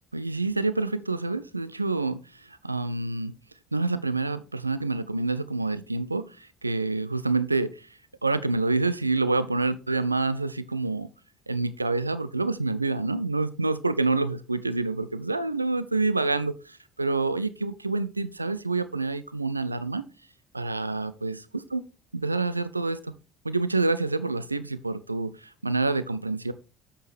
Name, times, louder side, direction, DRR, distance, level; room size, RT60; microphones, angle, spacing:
voice 1, 0.1-3.3 3.7-7.9 8.2-11.1 11.5-20.0 20.5-21.8 22.1-23.1 23.4-26.5, right 3 dB, 85° right, 0.3 m, -27 dB
7.2 x 7.0 x 3.4 m
figure-of-eight pair, 55°, 0 cm